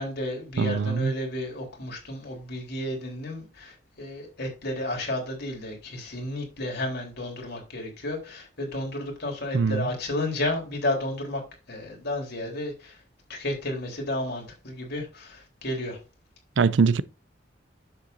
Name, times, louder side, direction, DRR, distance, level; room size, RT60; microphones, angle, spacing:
voice 1, 0.0-11.4 11.7-13.0 13.3-16.0, left 1 dB, 60° left, 3.8 m, -32 dB
voice 2, 0.6-1.1 9.5-9.9 16.6-17.0, right 5 dB, 70° right, 0.5 m, -22 dB
10.5 x 7.4 x 2.7 m
head